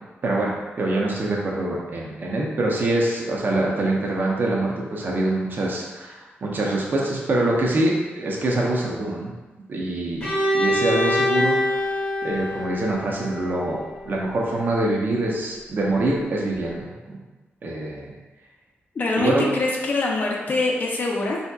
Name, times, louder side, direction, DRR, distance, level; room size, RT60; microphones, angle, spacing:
voice 1, 0.2-9.3 9.7-10.3 10.5-11.9 12.2-13.8 14.1-17.2 17.6-18.1 19.2-19.4, right 2 dB, 50° right, -2 dB, 0.6 m, -24 dB
Bowed string instrument, 10.2-14.0, left 1 dB, 25° left, 0.8 m, -24 dB
voice 2, 19.0-21.4, left 2 dB, 45° left, -1 dB, 0.5 m, -24 dB
3.3 x 2.7 x 2.2 m, 1.2 s
wide cardioid pair, 115°, 4 cm